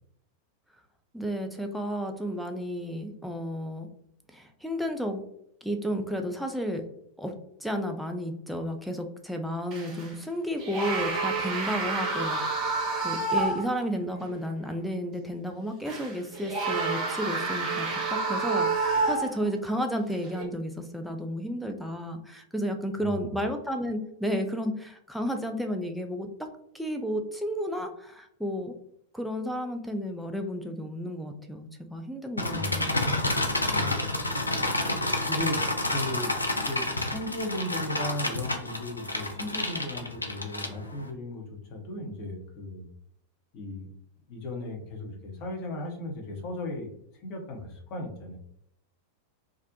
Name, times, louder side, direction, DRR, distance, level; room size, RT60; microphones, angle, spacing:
voice 1, 1.1-3.9 4.3-5.2 5.6-6.8 7.2-7.3 7.6-26.5 26.7-28.8 29.1-33.2, equal, ahead, 5 dB, 0.4 m, -32 dB
sound 1, 9.7-10.1 10.6-13.8 14.2-14.3 15.8-19.5 20.2-20.4, right 3 dB, 35° right, 0.6 m, -29 dB
sound 2, 32.4-41.1, left 2 dB, 85° left, 0.3 m, -29 dB
voice 2, 32.5-34.2 35.2-42.9 43.5-43.9 44.3-48.4, left 1 dB, 40° left, 0 dB, 0.7 m, -36 dB
2.4 x 2.0 x 2.6 m, 0.73 s
figure-of-eight pair, 90°, 0 cm